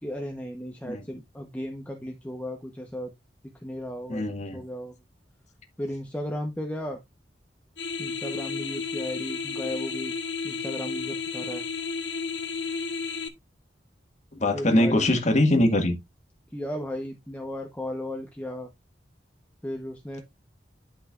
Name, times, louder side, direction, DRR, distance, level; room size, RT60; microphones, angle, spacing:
voice 1, 0.0-3.1 3.5-4.9 5.8-7.0 8.0-10.1 10.4-11.7 14.5-15.3 16.5-18.7 19.6-20.2, left 1 dB, 10° left, 1.0 m, -35 dB
voice 2, 4.1-4.6 14.4-16.0, left 1 dB, 40° left, 1.8 m, -22 dB
sound 1, 7.8-13.3, left 5 dB, 90° left, 1.2 m, -32 dB
11.0 x 5.6 x 2.5 m
head